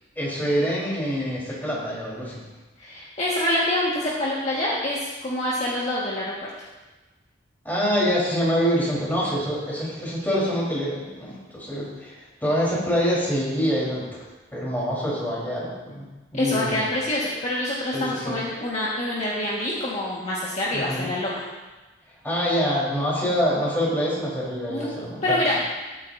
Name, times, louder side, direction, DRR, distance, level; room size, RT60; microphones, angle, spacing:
voice 1, 0.2-2.4 7.6-14.2 14.5-16.1 16.3-16.8 17.9-18.3 20.7-21.1 22.2-25.5, equal, 10° left, -6 dB, 4.2 m, -25 dB
voice 2, 2.8-6.5 16.3-21.4 24.7-24.9 25.2-25.6, left 1 dB, 35° left, -7 dB, 1.8 m, -26 dB
19.0 x 8.8 x 2.8 m, 1.2 s
head